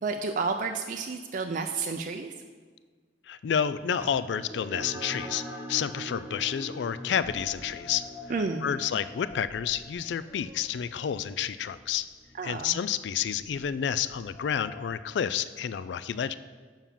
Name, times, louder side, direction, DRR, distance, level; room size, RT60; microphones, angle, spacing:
voice 1, 0.0-2.3 8.3-8.7 12.3-12.8, right 4 dB, 45° right, 4 dB, 0.4 m, -31 dB
voice 2, 3.3-8.1 8.6-12.1 12.4-16.4, left 8 dB, 70° left, 15 dB, 0.3 m, -30 dB
sound 1, 4.0-12.9, right 1 dB, 15° right, 1.5 m, -43 dB
sound 2, 7.2-15.0, left 3 dB, 30° left, 1.6 m, -48 dB
7.1 x 5.6 x 7.3 m, 1.5 s
head